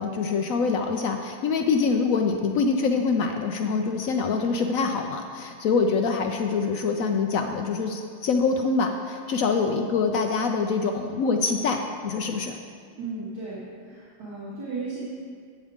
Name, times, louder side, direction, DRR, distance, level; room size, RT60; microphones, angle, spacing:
voice 1, 0.0-12.6, left 4 dB, 75° left, 4 dB, 0.7 m, -25 dB
voice 2, 13.0-15.0, right 3 dB, 60° right, -11 dB, 2.7 m, -35 dB
12.5 x 8.3 x 3.6 m, 2.1 s
omnidirectional pair, 2.1 m